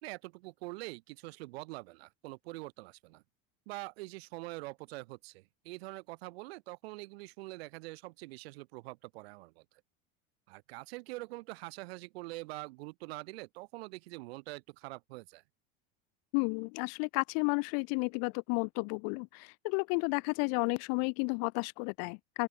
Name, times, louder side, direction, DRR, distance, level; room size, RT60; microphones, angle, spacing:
voice 1, 0.0-3.2 3.7-9.6 10.5-15.4, right 22 dB, 75° right, 4.6 m, -44 dB
voice 2, 16.3-22.5, left 40 dB or more, 55° left, 0.5 m, -32 dB
open air
supercardioid pair, 125°, 31 cm